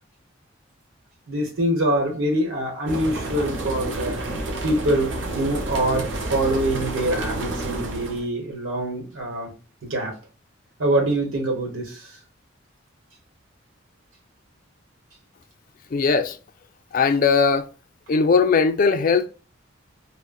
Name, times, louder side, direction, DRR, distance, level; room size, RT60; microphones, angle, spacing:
voice 1, 1.3-4.2 4.6-9.5 9.8-10.2 10.8-12.2, right 1 dB, 90° right, 1.0 m, -25 dB
sound 1, 2.9-8.2, right 2 dB, 70° right, 0.7 m, -29 dB
voice 2, 15.9-16.4 16.9-17.7 18.1-19.3, left 5 dB, 45° left, 0.4 m, -19 dB
3.7 x 2.1 x 2.3 m
head